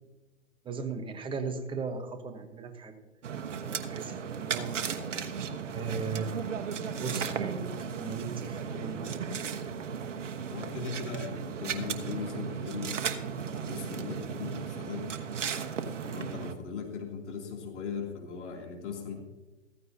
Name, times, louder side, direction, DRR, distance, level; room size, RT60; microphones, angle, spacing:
voice 1, 0.6-2.9 3.6-4.8 5.7-6.3 7.0-9.4, right 5 dB, 15° right, 6 dB, 1.1 m, -37 dB
sound 1, 3.2-16.5, right 6 dB, 70° right, 1.3 m, -35 dB
voice 2, 10.5-15.1 16.0-19.1, left 5 dB, 65° left, 1 dB, 3.0 m, -39 dB
15.0 x 14.5 x 2.8 m, 1.1 s
hypercardioid pair, 125°, 38 cm